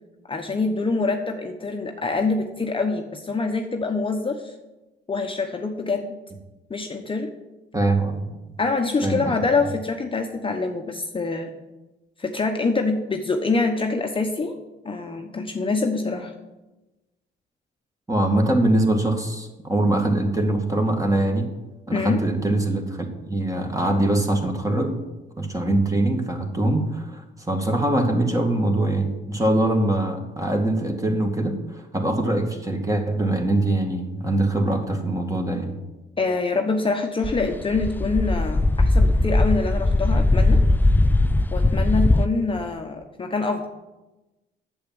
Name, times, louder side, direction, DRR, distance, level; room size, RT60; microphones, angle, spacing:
voice 1, 0.3-4.5 5.1-6.2 6.7-7.3 8.6-11.5 12.2-14.6 14.8-16.3 21.9-22.2 36.2-40.6 41.5-43.7, left 3 dB, 25° left, 3 dB, 1.0 m, -25 dB
voice 2, 7.7-8.3 9.0-9.4 18.1-21.5 21.9-25.0 25.4-35.8, right 1 dB, 15° right, 3 dB, 2.0 m, -23 dB
sound 1, 37.2-42.3, left 2 dB, 10° left, 0.4 m, -19 dB
8.4 x 7.3 x 7.7 m, 1.1 s
cardioid pair, 90°, 20 cm